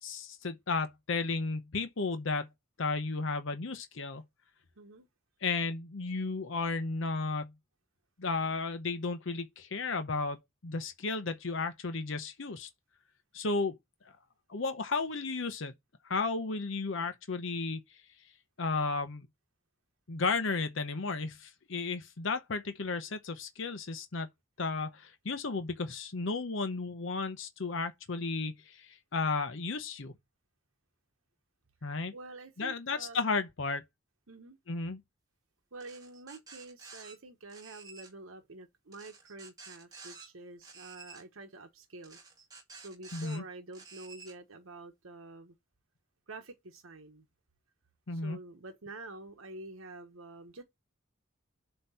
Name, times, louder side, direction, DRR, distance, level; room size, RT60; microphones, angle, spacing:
voice 1, 0.0-2.5 2.8-4.2 5.4-7.5 8.2-10.4 10.6-12.7 13.3-13.8 14.5-15.7 16.0-17.8 18.6-19.3 20.1-24.3 24.6-30.1 31.8-32.1 32.6-33.8 34.7-35.0 43.1-43.4 48.1-48.4, left 3 dB, 65° left, 0.8 m, -33 dB
voice 2, 4.8-5.1 32.1-33.2 34.3-34.6 35.7-42.2 42.8-45.6 46.3-47.3 48.1-50.6, right 2 dB, 90° right, 1.1 m, -48 dB
sound 1, 35.8-37.1 37.5-38.1 38.9-40.3 40.6-41.2 42.0-43.4 43.7-44.3, right 4 dB, 20° right, 1.9 m, -51 dB
7.7 x 3.0 x 5.6 m
head